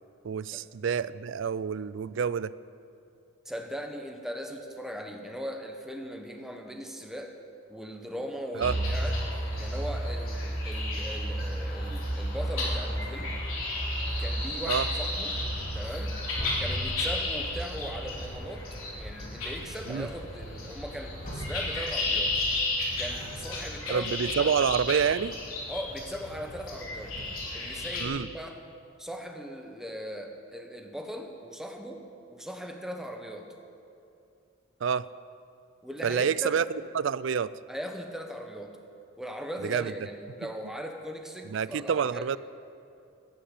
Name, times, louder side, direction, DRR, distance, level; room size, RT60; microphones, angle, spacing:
voice 1, 0.2-2.5 8.6-8.7 14.7-14.9 19.9-20.1 23.9-25.4 28.0-28.3 34.8-35.1 36.0-36.6 36.9-37.5 39.6-39.9 41.5-42.4, right 7 dB, 65° right, 18 dB, 0.4 m, -28 dB
voice 2, 3.4-7.3 7.7-9.2 9.6-13.3 14.2-15.4 15.7-16.2 16.6-18.6 18.9-22.4 23.0-24.6 25.7-27.2 27.5-28.6 29.0-32.0 32.3-33.5 35.8-36.6 37.7-38.8 39.2-42.4, equal, ahead, 3 dB, 1.2 m, -39 dB
sound 1, 8.6-28.0, left 1 dB, 85° left, 3.3 m, -32 dB
sound 2, 15.3-16.1 16.3-17.4 17.8-18.6 19.2-24.2, equal, 40° left, 3.9 m, -42 dB
11.5 x 11.5 x 8.4 m, 2.6 s
head